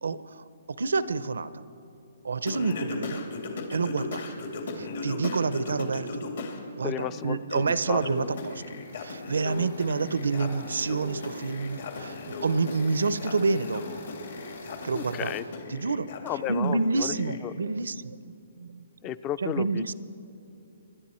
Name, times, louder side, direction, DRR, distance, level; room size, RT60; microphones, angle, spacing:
voice 1, 0.0-1.6 2.2-3.2 3.7-4.3 4.8-6.2 6.8-8.6 9.0-13.9 14.8-15.3 15.7-16.1 16.5-19.1 19.4-19.9, right 4 dB, 90° right, 15 dB, 0.6 m, -28 dB
Singing, 2.5-6.6 7.0-17.4, left 3 dB, 65° left, 2.5 m, -37 dB
voice 2, 6.8-7.6 7.9-8.3 14.9-15.5 16.2-17.2 17.4-17.5 19.0-19.9, left 11 dB, 20° left, 16 dB, 0.4 m, -33 dB
sound 1, 7.6-15.4, left 2 dB, 90° left, 3.0 m, -46 dB
25.5 x 11.5 x 4.4 m, 2.7 s
hypercardioid pair, 155°, 0 cm